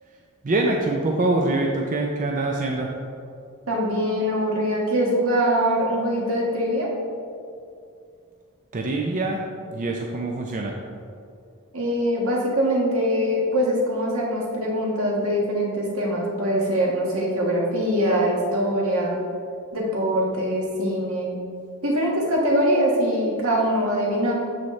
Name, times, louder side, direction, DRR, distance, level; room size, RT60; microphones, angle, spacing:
voice 1, 0.4-2.9 8.7-9.4 9.7-10.7, right 2 dB, 40° right, 0 dB, 0.5 m, -24 dB
voice 2, 3.7-6.9 11.7-19.2 19.7-21.4 21.8-24.3, equal, 80° right, -3 dB, 1.6 m, -23 dB
12.5 x 4.2 x 3.2 m, 2.4 s
head